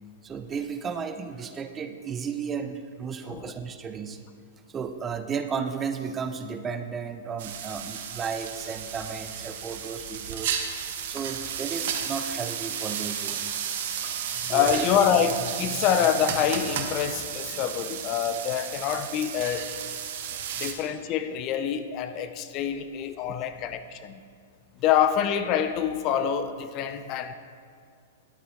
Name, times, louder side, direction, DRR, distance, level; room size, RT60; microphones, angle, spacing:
voice 1, 0.2-4.2 4.7-13.4 14.5-14.9 20.5-20.6, right 6 dB, 20° right, 9 dB, 0.5 m, -34 dB
sound 1, 7.4-20.7, right 8 dB, 60° right, 1.0 m, -33 dB
voice 2, 14.4-19.7 20.6-24.2 24.8-27.3, left 8 dB, 40° left, 10 dB, 0.5 m, -26 dB
11.5 x 8.3 x 3.8 m, 2.2 s
hypercardioid pair, 110°, 0 cm